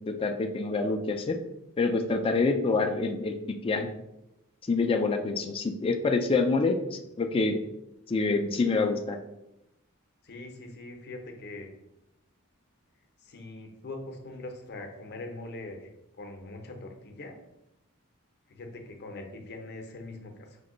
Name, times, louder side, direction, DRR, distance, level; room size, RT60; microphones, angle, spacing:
voice 1, 0.1-1.4 1.8-3.4 3.6-3.9 4.7-7.6 8.1-9.2, left 3 dB, 25° left, 5 dB, 0.3 m, -26 dB
voice 2, 10.2-11.7 13.2-15.9 16.2-17.4 18.5-20.6, left 2 dB, 50° left, 3 dB, 0.7 m, -42 dB
5.1 x 2.2 x 3.7 m, 0.87 s
head